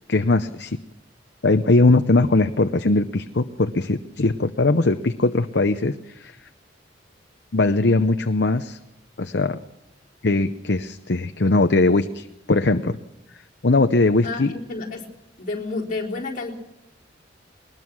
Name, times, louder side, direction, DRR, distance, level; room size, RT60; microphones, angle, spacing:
voice 1, 0.1-0.8 1.4-6.4 7.5-8.8 9.2-9.6 10.2-13.0 13.6-14.5, left 2 dB, 65° left, 8 dB, 0.8 m, -20 dB
voice 2, 14.7-15.0 15.4-16.5, left 3 dB, 45° left, -2 dB, 4.2 m, -29 dB
21.5 x 20.0 x 6.3 m, 0.85 s
head